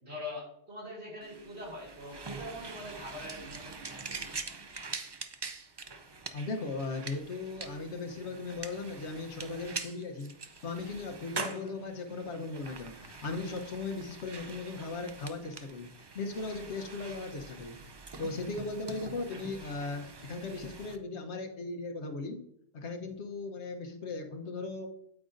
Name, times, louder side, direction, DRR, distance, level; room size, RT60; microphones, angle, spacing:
voice 1, 0.0-4.2, left 1 dB, 70° right, -4 dB, 3.0 m, -43 dB
sound 1, 1.2-21.0, right 4 dB, 35° right, 0.4 m, -44 dB
voice 2, 6.3-10.3 10.6-15.9 16.1-17.8 18.2-22.4 22.7-25.0, left 3 dB, 80° left, 4 dB, 1.3 m, -37 dB
8.8 x 8.5 x 2.6 m, 0.73 s
omnidirectional pair, 1.1 m